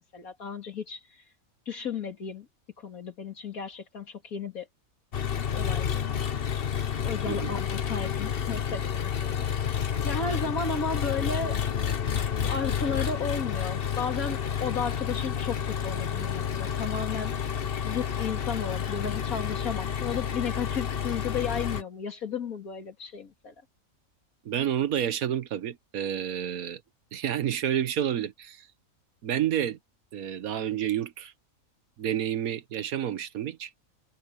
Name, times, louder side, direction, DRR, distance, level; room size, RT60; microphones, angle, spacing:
voice 1, 0.1-1.2 1.7-2.5 2.8-4.7 5.5-6.2 7.0-9.4 10.0-11.6 12.4-17.3 17.8-23.5, left 5 dB, 85° left, 2.7 m, -34 dB
Engine, 5.1-21.8, left 8 dB, 45° left, 1.1 m, -30 dB
voice 2, 7.3-7.6 24.4-26.8 27.1-28.7 29.2-29.8 30.1-31.3 32.0-33.7, right 10 dB, 85° right, 1.4 m, -29 dB
omnidirectional pair, 1.5 m